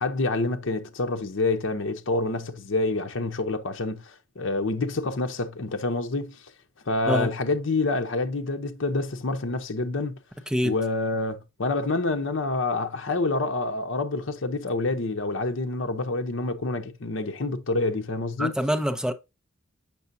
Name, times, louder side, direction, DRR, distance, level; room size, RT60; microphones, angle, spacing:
voice 1, 0.0-6.4 6.9-10.2 10.6-18.6, left 3 dB, 70° left, 0.7 m, -27 dB
voice 2, 18.4-19.1, equal, 5° right, 0.6 m, -25 dB
7.0 x 6.0 x 2.6 m
head